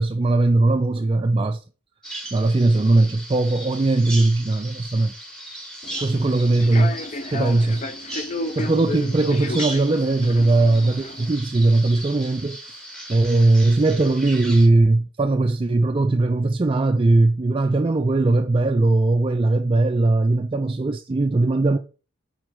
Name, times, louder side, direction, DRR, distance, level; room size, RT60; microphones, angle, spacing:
voice 1, 0.0-1.6 2.3-5.1 6.0-7.0 7.3-7.8 8.6-12.8 13.1-21.8, right 2 dB, 25° right, 0.3 m, -19 dB
Bird vocalization bird call bird song, 2.0-14.7, right 1 dB, 5° left, 1.5 m, -37 dB
Human voice / Subway metro underground, 5.8-11.3, left 2 dB, 35° left, 0.5 m, -33 dB
6.3 x 4.9 x 4.6 m
head